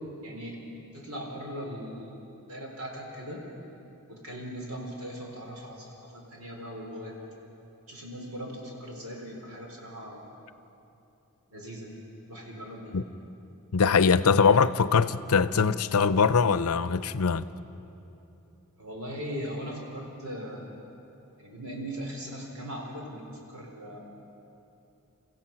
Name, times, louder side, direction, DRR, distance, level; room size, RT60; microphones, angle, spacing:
voice 1, 0.2-0.6 0.9-2.2 2.5-3.4 4.1-7.1 7.9-10.3 11.5-11.9 12.3-13.0 18.8-20.6 21.4-24.0, equal, 75° right, 4.2 m, -39 dB
voice 2, 13.7-17.4, left 5 dB, 85° left, 0.6 m, -22 dB
28.5 x 15.5 x 5.9 m
head